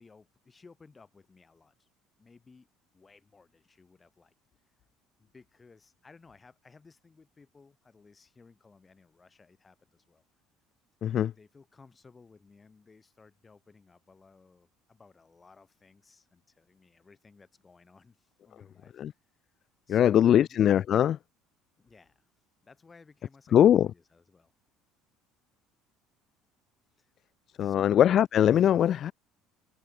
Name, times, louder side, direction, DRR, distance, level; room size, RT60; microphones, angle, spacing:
voice 1, 0.0-1.9 2.2-2.7 2.9-4.3 4.7-4.8 5.2-10.2 11.1-19.0 19.3-19.4 19.9-20.6 21.8-22.3 22.6-24.5 27.0-27.1 27.6-28.0, left 4 dB, 15° left, 3.2 m, -58 dB
voice 2, 11.0-11.3 19.0-19.1 19.9-21.2 23.5-23.9 27.6-29.1, left 10 dB, 35° left, 0.3 m, -21 dB
cardioid pair, 170°, 0 cm